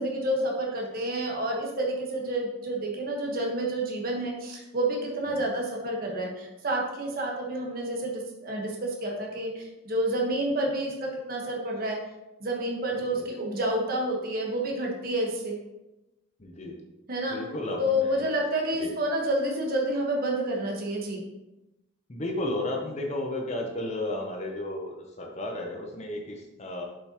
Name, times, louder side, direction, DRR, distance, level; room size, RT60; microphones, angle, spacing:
voice 1, 0.0-12.0 12.4-15.6 17.1-17.4 17.8-21.2, right 1 dB, 45° right, -1 dB, 1.3 m, -29 dB
voice 2, 16.4-16.8 17.3-18.3 18.7-18.9 22.1-26.8, left 1 dB, 35° left, 1 dB, 0.7 m, -33 dB
6.8 x 5.2 x 2.9 m, 0.97 s
head